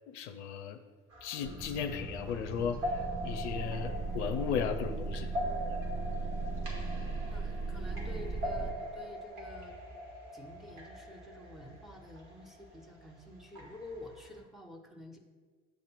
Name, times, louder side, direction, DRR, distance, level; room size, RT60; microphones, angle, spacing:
voice 1, 0.1-0.8 1.2-5.3 5.7-5.8, left 7 dB, 65° left, 7 dB, 0.6 m, -36 dB
sound 1, 1.1-14.4, equal, 55° right, 1.7 m, -42 dB
sound 2, 1.4-8.7, right 3 dB, 20° right, 0.6 m, -37 dB
voice 2, 7.2-9.8 10.3-15.2, left 1 dB, ahead, 3 dB, 1.1 m, -49 dB
8.1 x 2.9 x 6.1 m, 1.5 s
figure-of-eight pair, 55°, 37 cm